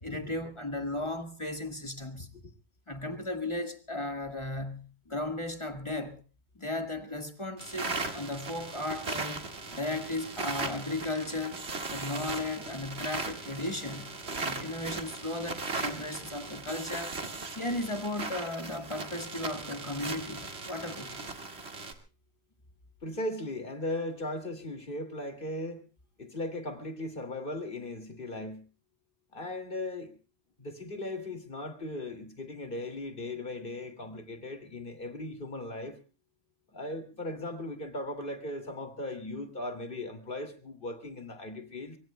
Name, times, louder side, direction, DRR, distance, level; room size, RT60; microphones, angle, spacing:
voice 1, 0.0-2.3 2.9-6.2 6.6-9.4 9.7-11.6 11.9-14.2 14.4-17.2 17.6-21.3, left 2 dB, 30° left, 1.7 m, -35 dB
sound 1, 7.6-21.9, right 3 dB, 80° right, 2.2 m, -38 dB
voice 2, 23.0-25.8 26.2-28.6 29.3-30.1 30.6-36.0 36.7-42.0, left 1 dB, 55° left, 2.7 m, -37 dB
24.0 x 23.5 x 2.2 m
omnidirectional pair, 1.1 m